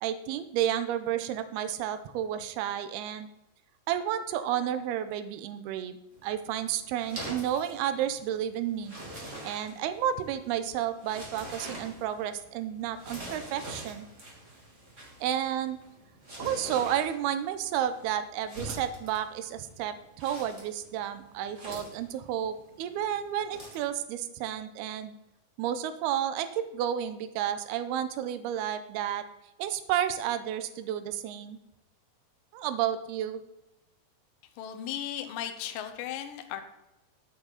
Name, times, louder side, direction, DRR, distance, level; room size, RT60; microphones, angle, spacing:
voice 1, 0.0-3.3 3.9-8.9 9.4-14.1 15.2-15.8 16.4-25.2 25.6-29.3 29.6-31.6 32.5-33.4, right 10 dB, 85° right, 11 dB, 2.6 m, -31 dB
sound 1, 6.1-23.9, right 1 dB, 20° right, 2.3 m, -45 dB
voice 2, 34.6-36.6, left 10 dB, 75° left, 7 dB, 2.2 m, -36 dB
14.0 x 7.8 x 4.0 m, 0.91 s
omnidirectional pair, 4.8 m